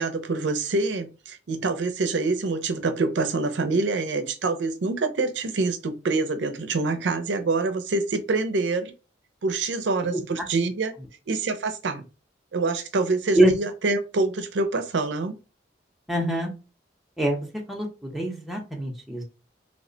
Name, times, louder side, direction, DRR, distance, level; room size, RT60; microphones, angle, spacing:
voice 1, 0.0-8.9 9.4-10.9 11.3-12.0 12.5-15.4, right 3 dB, 90° right, 0.5 m, -26 dB
voice 2, 16.1-16.5 17.2-19.2, right 1 dB, ahead, 0.7 m, -24 dB
3.2 x 2.1 x 3.8 m
head